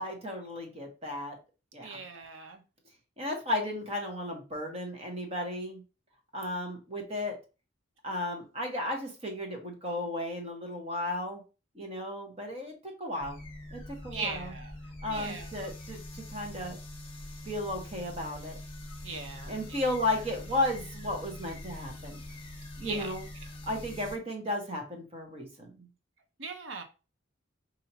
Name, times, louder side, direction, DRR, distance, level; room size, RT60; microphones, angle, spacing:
voice 1, 0.0-1.3 1.7-2.0 3.2-5.8 6.3-7.4 8.0-11.4 11.7-13.4 13.7-14.5 15.0-16.8 17.4-18.6 19.5-22.2 22.8-23.3 23.7-25.9, left 1 dB, 30° right, 1.1 m, -34 dB
voice 2, 1.8-2.6 14.1-14.7 15.1-15.5 19.0-19.8 22.8-23.1 26.4-26.8, right 5 dB, 75° right, 0.9 m, -39 dB
sound 1, 13.2-24.2, left 1 dB, 25° left, 1.1 m, -44 dB
5.6 x 2.7 x 2.8 m
head